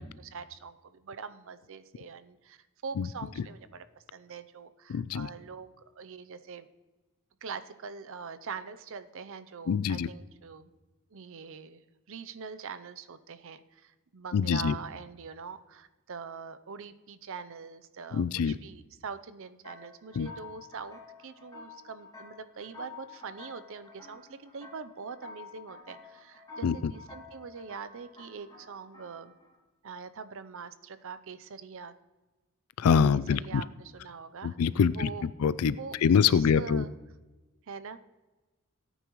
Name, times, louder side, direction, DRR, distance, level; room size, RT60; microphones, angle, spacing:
voice 1, 0.0-3.8 4.1-5.7 6.0-6.7 7.4-10.7 11.1-29.3 29.8-31.9 33.1-34.6 34.9-35.3 35.7-36.9 37.7-38.0, right 5 dB, 65° right, 12 dB, 0.6 m, -43 dB
voice 2, 4.9-5.3 9.7-10.1 14.3-14.7 18.1-18.6 20.2-20.3 26.6-26.7 32.8-33.6 34.4-35.1 35.4-35.7 36.0-36.8, left 6 dB, 75° left, 18 dB, 0.4 m, -24 dB
sound 1, 19.6-29.6, left 4 dB, 20° left, 2.1 m, -50 dB
17.5 x 9.2 x 3.1 m, 1.2 s
head